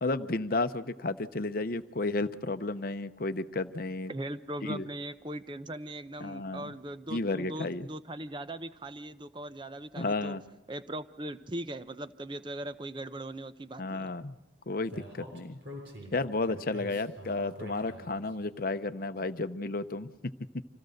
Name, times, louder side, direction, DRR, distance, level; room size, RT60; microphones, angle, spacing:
voice 1, 0.0-4.1 4.6-4.8 6.2-6.7 7.1-7.9 10.0-10.4 13.8-14.4 14.7-15.6 16.1-20.1, left 2 dB, 50° left, 11 dB, 0.7 m, -32 dB
voice 2, 4.1-10.4 10.7-14.1, right 1 dB, 25° right, 12 dB, 0.7 m, -39 dB
Speech, 14.9-18.3, equal, 70° right, 7.2 m, -45 dB
26.0 x 16.0 x 6.5 m, 1.0 s
head